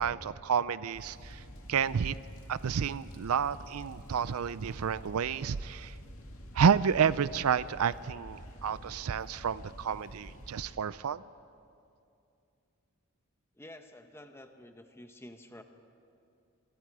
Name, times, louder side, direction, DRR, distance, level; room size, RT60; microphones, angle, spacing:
voice 1, 0.0-1.4 1.7-2.2 2.5-5.9 6.5-11.2, right 7 dB, 70° right, 17 dB, 0.4 m, -30 dB
sound 1, 0.9-10.7, equal, 65° left, 2.4 m, -48 dB
voice 2, 13.6-15.6, left 1 dB, 10° left, 6 dB, 1.1 m, -50 dB
27.0 x 22.0 x 4.8 m, 2.5 s
head